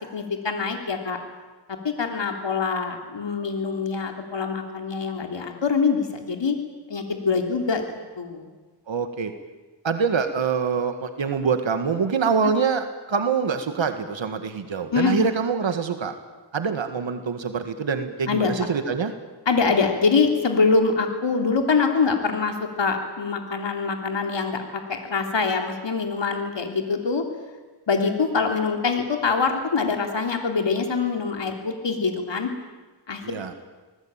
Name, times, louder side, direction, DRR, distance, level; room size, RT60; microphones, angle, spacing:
voice 1, 0.1-1.2 1.8-6.5 6.9-7.9 8.2-8.5 14.9-15.2 18.3-18.5 19.4-27.2 27.9-32.5 33.1-33.2, left 4 dB, 75° left, 4 dB, 3.2 m, -24 dB
voice 2, 8.9-9.3 9.8-16.1 16.5-19.1 33.2-33.5, right 5 dB, 85° right, 8 dB, 1.9 m, -25 dB
26.5 x 19.5 x 9.0 m, 1.3 s
wide cardioid pair, 70°, 44 cm